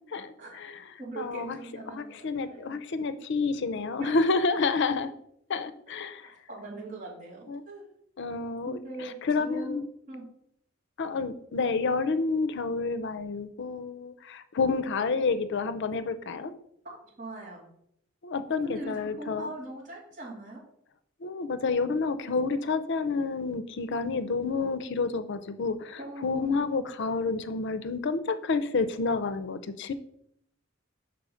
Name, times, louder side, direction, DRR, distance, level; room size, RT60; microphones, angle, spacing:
voice 1, 0.0-0.8 1.2-1.6 1.9-5.1 5.5-6.3 7.5-7.6 8.2-8.8 9.2-9.8 11.0-16.5 18.2-19.5 21.2-29.9, left 4 dB, 60° left, 12 dB, 0.5 m, -29 dB
voice 2, 1.0-2.8 4.0-4.1 6.2-7.8 8.6-9.8 10.1-10.3 16.8-17.6 18.6-20.6 26.0-26.6, right 2 dB, 40° right, -5 dB, 3.0 m, -41 dB
6.2 x 4.7 x 4.9 m, 0.72 s
head